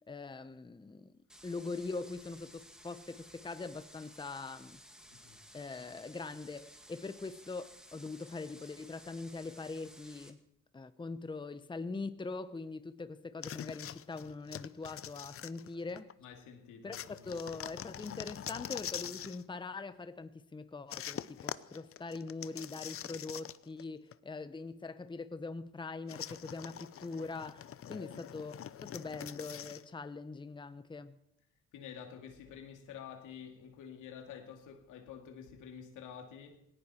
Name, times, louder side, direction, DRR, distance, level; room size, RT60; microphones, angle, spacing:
voice 1, 0.1-1.1 1.4-4.8 5.5-10.4 10.7-16.1 16.8-17.0 17.3-28.5 28.8-31.2, left 3 dB, 15° left, 0.8 m, -42 dB
sound 1, 1.3-10.3, equal, ahead, 2.1 m, -56 dB
sound 2, 13.4-16.1 16.9-19.4 20.9-23.8 24.1-24.2 26.1-29.9, left 10 dB, 50° left, 0.7 m, -44 dB
voice 2, 16.2-17.3 27.8-28.1 31.7-36.7, left 8 dB, 90° left, 2.5 m, -49 dB
18.5 x 18.0 x 4.4 m
cardioid pair, 90°, 30 cm